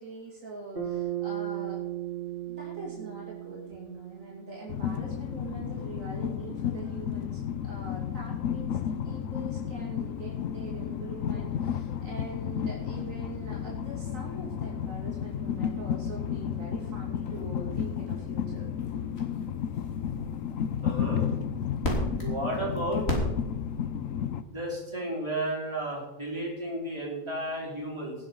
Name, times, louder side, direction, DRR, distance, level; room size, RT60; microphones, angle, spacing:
voice 1, 0.0-1.8 2.5-18.7, right 2 dB, 90° right, -3 dB, 3.2 m, -43 dB
Bass guitar, 0.8-5.2, right 12 dB, 45° right, 2.4 m, -36 dB
Train, 4.7-24.4, left 8 dB, 80° left, 1.2 m, -32 dB
sound 1, 9.5-23.9, left 1 dB, 50° left, 3.7 m, -40 dB
voice 2, 20.8-21.3 22.2-23.0 24.5-28.1, right 1 dB, 20° right, -4 dB, 4.9 m, -33 dB
18.5 x 8.6 x 5.6 m, 0.95 s
omnidirectional pair, 1.3 m